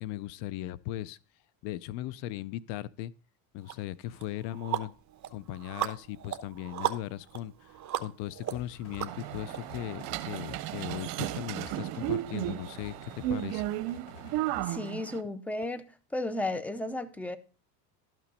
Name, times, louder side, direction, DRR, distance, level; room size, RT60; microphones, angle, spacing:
voice 1, 0.0-1.2 1.6-3.1 3.5-4.9 5.3-13.6, left 14 dB, 60° left, 0.5 m, -38 dB
sound 1, 3.7-3.8 4.2-9.6, right 11 dB, 35° right, 1.0 m, -36 dB
sound 2, 8.5-14.7, left 4 dB, 75° left, 1.6 m, -50 dB
sound 3, 9.1-15.2, right 14 dB, 75° right, 0.8 m, -34 dB
voice 2, 14.6-15.9 16.1-17.4, left 2 dB, 5° left, 0.5 m, -33 dB
12.0 x 6.0 x 4.1 m
supercardioid pair, 115°, 49 cm